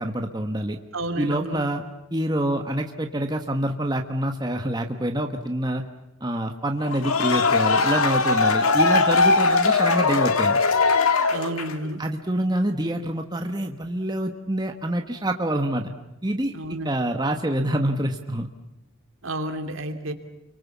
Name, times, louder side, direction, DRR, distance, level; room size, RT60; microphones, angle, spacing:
voice 1, 0.0-0.8 1.2-1.8 2.1-5.8 6.2-10.6 12.0-15.9 16.2-18.5, right 1 dB, 20° right, 4 dB, 1.3 m, -26 dB
voice 2, 0.9-1.6 11.3-12.0 16.5-16.9 19.2-20.1, right 1 dB, 70° right, 6 dB, 2.8 m, -31 dB
sound 1, 6.8-11.9, left 4 dB, 90° left, 1.8 m, -20 dB
29.5 x 24.0 x 7.3 m, 0.93 s
head